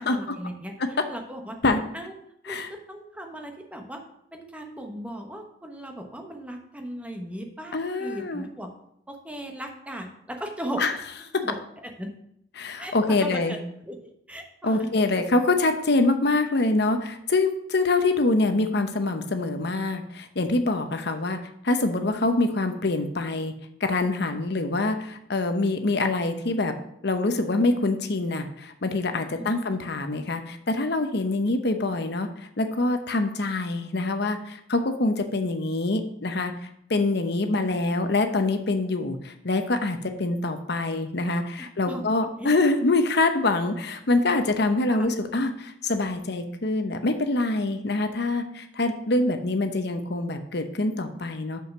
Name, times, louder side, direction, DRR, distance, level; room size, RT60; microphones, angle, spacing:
voice 1, 0.0-1.6 1.9-2.1 2.4-4.0 4.3-8.7 9.1-10.9 11.4-12.1 12.8-13.6 13.8-14.9 21.0-21.1 29.4-29.6 41.8-42.1 42.4-42.5 44.9-45.1, right 1 dB, 5° right, 3 dB, 1.1 m, -37 dB
voice 2, 7.7-8.4 10.8-10.9 11.3-11.4 12.6-13.6 14.6-21.4 21.6-23.5 23.8-26.7 27.0-32.3 32.6-36.5 36.9-51.6, left 2 dB, 60° left, 7 dB, 0.9 m, -25 dB
6.4 x 5.6 x 6.1 m, 0.73 s
head